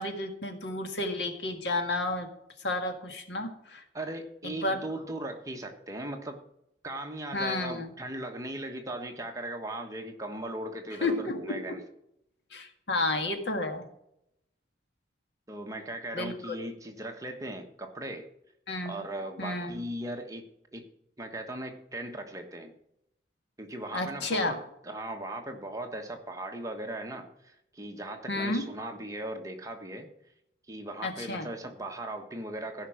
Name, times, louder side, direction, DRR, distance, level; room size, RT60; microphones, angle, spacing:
voice 1, 0.0-2.3 2.6-3.8 4.4-4.8 7.3-7.9 11.0-11.8 12.5-13.9 16.1-16.6 18.7-19.0 19.4-19.8 23.9-24.6 28.3-28.7 31.0-31.5, left 2 dB, 75° left, 5 dB, 1.9 m, -31 dB
voice 2, 3.9-6.4 6.8-11.8 15.5-18.3 18.8-20.4 20.7-20.9 21.2-22.7 23.6-30.1 30.7-32.9, right 1 dB, 20° right, 3 dB, 1.3 m, -38 dB
15.5 x 5.8 x 6.3 m, 0.78 s
head